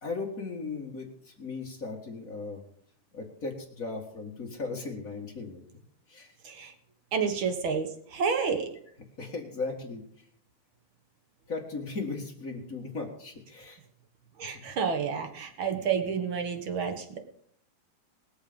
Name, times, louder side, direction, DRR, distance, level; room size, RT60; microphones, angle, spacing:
voice 1, 0.0-2.6 3.1-5.6 6.1-6.4 9.2-10.3 11.5-13.8 14.4-14.5, left 3 dB, 30° left, 0 dB, 1.7 m, -37 dB
voice 2, 7.1-8.7 14.4-17.2, right 6 dB, 55° right, 6 dB, 1.4 m, -30 dB
21.0 x 7.1 x 5.2 m, 0.65 s
omnidirectional pair, 4.1 m